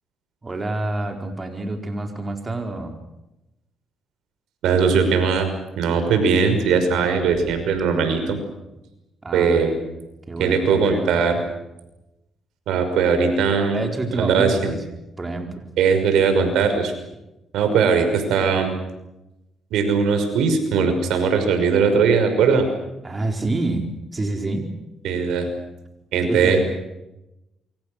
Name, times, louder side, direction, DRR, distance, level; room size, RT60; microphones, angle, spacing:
voice 1, 0.4-3.0 9.2-9.8 10.3-11.2 13.7-14.8 15.2-15.7 23.0-24.7 26.2-26.6, right 2 dB, 25° right, 4 dB, 4.3 m, -28 dB
voice 2, 4.6-5.5 5.8-8.4 9.3-9.7 10.4-11.4 12.7-13.8 14.2-14.6 15.8-16.9 17.5-18.7 19.7-22.7 25.0-25.5 26.1-26.6, right 5 dB, 85° right, 7 dB, 5.7 m, -19 dB
28.0 x 25.5 x 6.6 m, 0.94 s
cardioid pair, 90°, 0 cm